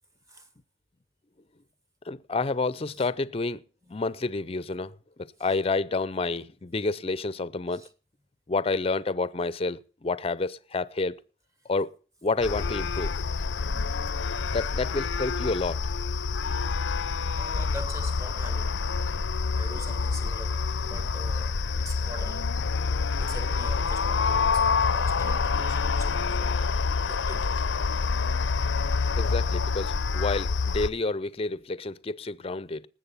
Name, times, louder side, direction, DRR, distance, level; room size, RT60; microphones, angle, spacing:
voice 1, 2.1-3.6 3.9-4.9 5.4-7.8 8.5-11.2 11.7-11.9 12.2-13.1 14.5-15.8 29.2-32.9, left 3 dB, 30° left, 0.5 m, -29 dB
sound 1, 12.4-30.9, left 4 dB, 85° left, 0.6 m, -27 dB
voice 2, 17.3-18.9 19.5-22.6 23.2-26.6 27.1-27.6, equal, 15° right, 1.2 m, -44 dB
19.5 x 7.7 x 5.6 m
head